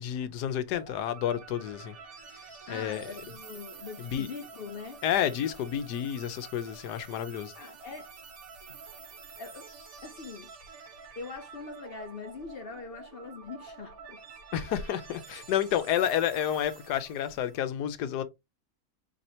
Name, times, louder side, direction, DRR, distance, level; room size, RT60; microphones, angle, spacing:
voice 1, 0.0-1.9 2.7-3.1 4.0-4.3 5.0-7.5 14.5-18.2, left 10 dB, 85° left, 1.2 m, -30 dB
sound 1, 0.7-17.6, right 5 dB, 60° right, 1.4 m, -49 dB
voice 2, 2.7-5.0 7.5-8.1 9.4-9.7 10.0-10.5 11.2-14.2, left 4 dB, 65° left, 0.5 m, -42 dB
4.3 x 3.2 x 2.6 m
omnidirectional pair, 1.7 m